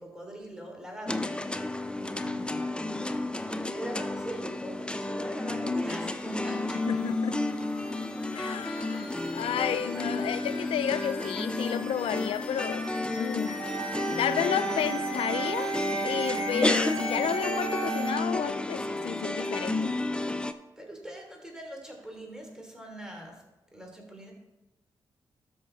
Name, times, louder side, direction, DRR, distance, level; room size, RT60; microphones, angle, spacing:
voice 1, 0.0-2.7 3.1-7.0 20.8-23.4 23.7-24.3, equal, 5° right, 3.2 m, -42 dB
sound 1, 1.1-20.5, left 2 dB, 10° left, 0.6 m, -31 dB
sound 2, 5.9-18.1, left 3 dB, 40° left, 3.6 m, -42 dB
voice 2, 6.9-7.4 8.3-12.9 13.2-13.6 14.2-15.7 16.0-19.9, left 10 dB, 75° left, 0.4 m, -32 dB
sound 3, 13.6-18.6, right 10 dB, 90° right, 0.8 m, -35 dB
13.0 x 6.1 x 3.4 m
supercardioid pair, 45°, 10 cm